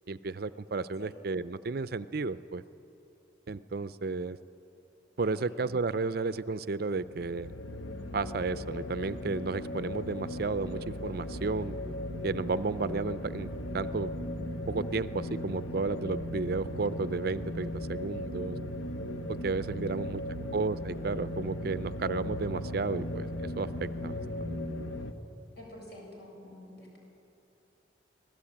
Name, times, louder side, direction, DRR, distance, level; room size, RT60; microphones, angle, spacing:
voice 1, 0.1-2.6 3.5-4.4 5.2-7.5 8.1-11.8 12.2-13.5 13.7-14.1 14.7-18.6 19.4-20.2 20.5-23.3 23.6-24.5, right 3 dB, 50° right, 15 dB, 0.5 m, -33 dB
sound 1, 7.0-25.1, left 1 dB, 85° left, 1.4 m, -37 dB
voice 2, 25.6-27.0, left 1 dB, 55° left, -1 dB, 7.1 m, -49 dB
24.5 x 17.0 x 8.7 m, 2.9 s
head